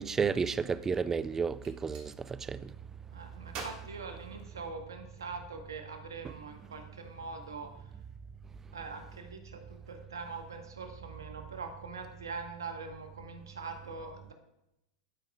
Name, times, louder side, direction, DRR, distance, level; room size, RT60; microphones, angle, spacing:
voice 1, 0.0-2.7 6.2-6.3, right 5 dB, 20° right, 0.3 m, -32 dB
Gunshot gunfire, 1.6-2.1 3.5-5.0, right 4 dB, 45° right, 1.6 m, -46 dB
voice 2, 3.1-7.7 8.7-9.6 9.9-14.3, right 4 dB, 85° right, 1.1 m, -43 dB
13.0 x 5.3 x 2.3 m
hypercardioid pair, 95°, 2 cm